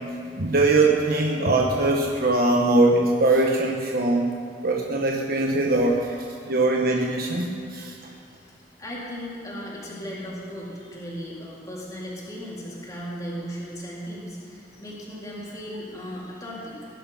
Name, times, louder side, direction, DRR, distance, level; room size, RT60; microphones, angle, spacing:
voice 1, 0.4-4.3 4.6-6.2 6.5-7.9, right 2 dB, 55° right, 0 dB, 1.2 m, -21 dB
voice 2, 7.7-16.8, equal, 20° left, -6 dB, 3.8 m, -37 dB
20.0 x 10.5 x 5.7 m, 2.4 s
head